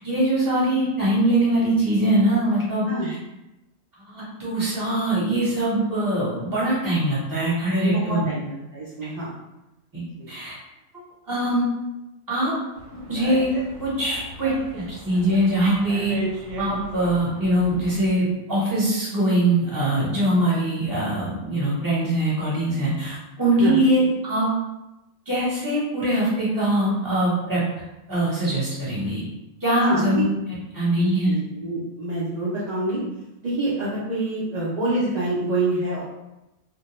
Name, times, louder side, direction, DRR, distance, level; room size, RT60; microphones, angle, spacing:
voice 1, 0.0-3.1 4.1-8.3 9.9-10.0 10.3-10.5 11.3-11.6 12.3-12.5 13.1-13.5 13.8-16.1 16.6-24.5 25.3-27.6 28.1-29.2 29.6-30.2 30.7-31.3, right 1 dB, 20° right, -8 dB, 0.8 m, -22 dB
voice 2, 7.8-9.3 10.2-10.3 23.6-23.8 29.8-30.0 31.0-33.0 33.4-36.0, right 2 dB, 50° right, -9 dB, 0.5 m, -27 dB
Dog, 12.8-18.1, right 1 dB, 85° right, 0.9 m, -36 dB
2.2 x 2.1 x 2.9 m, 0.96 s
omnidirectional pair, 1.3 m